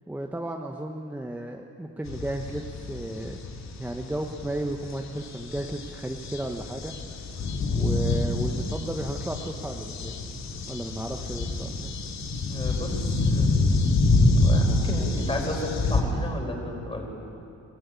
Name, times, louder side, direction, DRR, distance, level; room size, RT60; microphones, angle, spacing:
voice 1, 0.1-3.4 3.7-6.9 7.7-10.1 10.7-11.9, right 1 dB, 5° right, 3 dB, 1.1 m, -34 dB
sound 1, 2.1-16.0, left 2 dB, 65° left, 2.4 m, -27 dB
voice 2, 12.5-14.0 14.4-17.0, left 1 dB, 20° left, 1 dB, 4.7 m, -33 dB
22.0 x 15.0 x 8.5 m, 2.7 s
cardioid pair, 90°, 30 cm